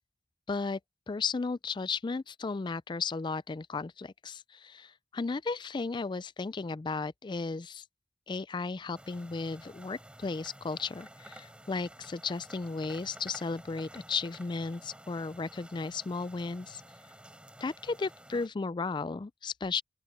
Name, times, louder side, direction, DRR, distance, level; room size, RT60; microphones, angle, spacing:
voice 1, 0.5-0.8 1.1-7.8 8.3-16.8 17.6-19.8, left 4 dB, 25° left, 0.3 m, -35 dB
sound 1, 8.9-18.5, right 1 dB, 5° right, 4.0 m, -52 dB
open air
head